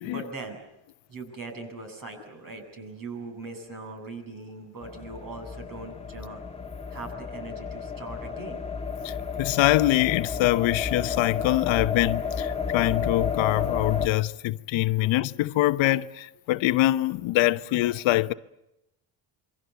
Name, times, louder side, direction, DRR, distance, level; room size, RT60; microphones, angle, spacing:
voice 1, 0.0-0.6 1.1-6.4 6.9-8.6 15.0-15.1 15.7-15.8, right 3 dB, 45° right, 7.9 m, -40 dB
sound 1, 4.8-14.1, left 6 dB, 15° left, 1.8 m, -32 dB
voice 2, 9.0-18.3, left 16 dB, 85° left, 1.0 m, -24 dB
27.5 x 24.0 x 8.2 m
cardioid pair, 115°, 45 cm